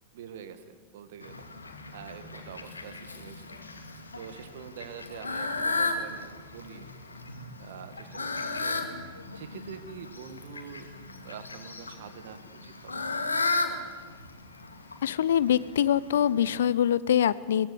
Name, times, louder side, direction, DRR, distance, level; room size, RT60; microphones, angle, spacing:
voice 1, 0.1-1.4 1.9-3.6 4.2-6.9 7.6-8.8 9.3-10.9 11.2-13.3, right 8 dB, 55° right, 10 dB, 2.1 m, -45 dB
Fowl, 1.2-16.6, left 3 dB, 80° left, 2.3 m, -35 dB
voice 2, 15.0-17.7, left 10 dB, 60° left, 19 dB, 0.7 m, -24 dB
22.5 x 20.0 x 8.4 m, 1.5 s
figure-of-eight pair, 90°, 0 cm